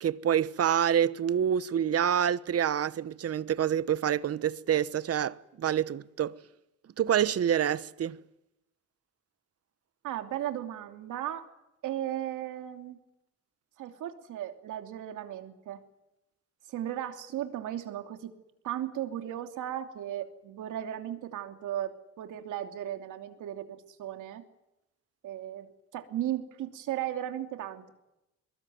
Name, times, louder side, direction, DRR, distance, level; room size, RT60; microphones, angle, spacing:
voice 1, 0.0-6.4 7.0-8.2, right 9 dB, 50° right, 1.1 m, -27 dB
voice 2, 10.0-11.5 11.8-13.0 13.8-15.8 16.7-18.3 18.6-24.4 25.2-25.7 25.9-27.9, right 11 dB, 80° right, 3.0 m, -36 dB
23.0 x 21.0 x 9.5 m
cardioid pair, 90°, 30 cm